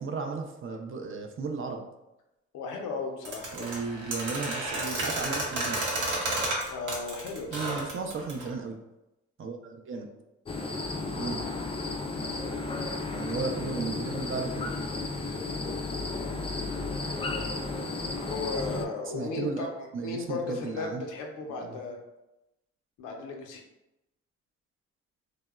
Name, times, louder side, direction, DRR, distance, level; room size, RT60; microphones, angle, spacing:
voice 1, 0.0-1.9 3.5-5.8 7.5-8.8 9.4-10.1 11.2-11.5 13.1-14.7 19.0-21.0 21.6-21.8, right 4 dB, 45° right, 4 dB, 0.5 m, -35 dB
voice 2, 2.5-3.7 6.7-7.8 11.1-11.4 16.7-16.9 18.1-22.0 23.0-23.6, left 4 dB, 85° left, 1 dB, 0.5 m, -36 dB
sound 1, 3.2-8.5, right 2 dB, 75° right, 0.8 m, -31 dB
sound 2, 10.5-18.9, left 3 dB, 20° left, 0.3 m, -33 dB
2.9 x 2.0 x 2.3 m, 0.94 s
supercardioid pair, 50°, 30 cm